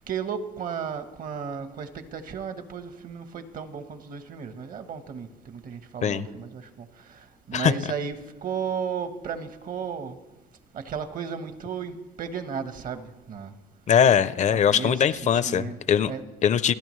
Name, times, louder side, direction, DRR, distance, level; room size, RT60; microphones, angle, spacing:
voice 1, 0.1-10.2 10.7-13.5 14.5-16.2, right 6 dB, 55° right, 10 dB, 1.1 m, -34 dB
voice 2, 13.9-16.1 16.4-16.7, left 8 dB, 45° left, 15 dB, 0.5 m, -21 dB
29.0 x 10.5 x 3.2 m, 1.1 s
cardioid pair, 110°, 17 cm